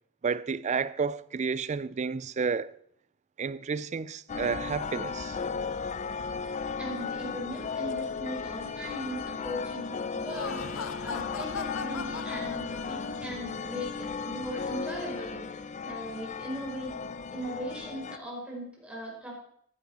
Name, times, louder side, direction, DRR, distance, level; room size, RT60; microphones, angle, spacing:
voice 1, 0.2-2.7 3.4-5.4, right 5 dB, 35° right, 0.4 m, -31 dB
sound 1, 4.3-18.2, left 5 dB, 35° left, 0.4 m, -36 dB
voice 2, 6.8-15.6 15.8-16.9 17.3-19.3, equal, 5° right, 4.8 m, -39 dB
Laughter, 10.1-13.4, left 6 dB, 70° left, 0.7 m, -38 dB
14.5 x 9.4 x 4.2 m
head